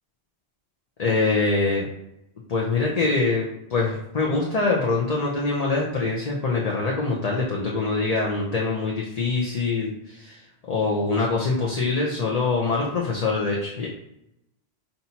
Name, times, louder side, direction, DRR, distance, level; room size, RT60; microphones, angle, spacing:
voice 1, 1.0-1.9 2.5-10.4 10.7-13.9, left 3 dB, 40° left, -3 dB, 0.7 m, -24 dB
5.7 x 2.7 x 2.8 m, 0.83 s
omnidirectional pair, 1.1 m